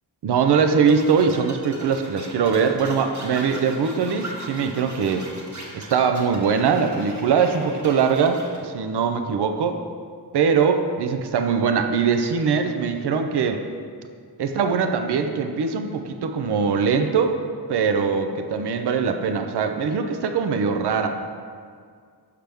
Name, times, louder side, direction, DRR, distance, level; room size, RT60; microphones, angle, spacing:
voice 1, 0.2-5.2 5.7-9.8 10.3-13.6 14.4-17.4 17.7-21.1, right 6 dB, 70° right, 6 dB, 0.6 m, -22 dB
sound 1, 0.9-8.6, right 1 dB, 45° right, 1.3 m, -39 dB
6.7 x 5.8 x 3.4 m, 2.1 s
wide cardioid pair, 90°, 41 cm